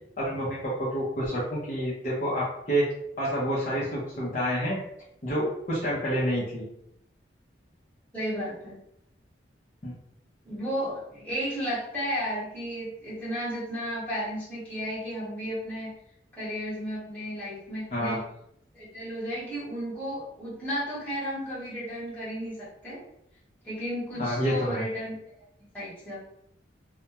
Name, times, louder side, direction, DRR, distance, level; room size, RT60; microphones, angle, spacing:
voice 1, 0.2-2.9 3.2-4.8 5.2-6.7 9.8-9.9 17.9-18.2 24.2-24.8, equal, 40° left, -7 dB, 0.6 m, -28 dB
voice 2, 8.1-8.8 10.4-15.9 16.3-18.2 18.7-23.0 23.6-25.2 25.7-26.2, equal, 10° left, -10 dB, 1.0 m, -33 dB
2.2 x 2.1 x 2.8 m, 0.75 s
head